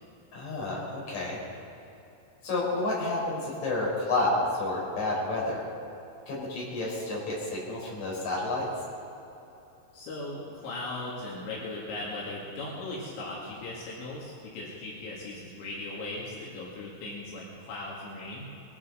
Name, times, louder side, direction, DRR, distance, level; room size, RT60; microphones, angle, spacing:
voice 1, 0.3-1.4 2.4-5.6 6.3-8.7, left 2 dB, 40° left, -5 dB, 5.3 m, -30 dB
voice 2, 9.9-18.5, left 2 dB, 75° left, -5 dB, 4.3 m, -38 dB
21.5 x 13.5 x 4.0 m, 2.9 s
omnidirectional pair, 5.4 m